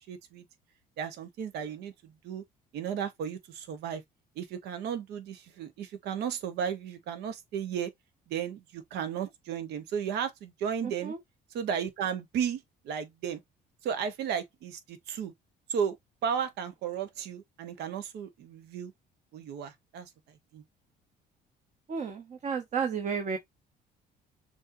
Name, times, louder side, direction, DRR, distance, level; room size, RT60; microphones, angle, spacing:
voice 1, 0.1-0.4 1.0-2.4 2.7-4.0 4.4-7.9 8.3-11.1 11.5-13.4 13.8-15.3 15.7-16.0 16.2-18.9 19.3-20.1 20.5-20.6, right 8 dB, 75° right, 1.1 m, -34 dB
voice 2, 10.8-11.2 21.9-23.4, right 6 dB, 45° right, 1.0 m, -32 dB
6.3 x 2.8 x 2.6 m
cardioid pair, 110°, 17 cm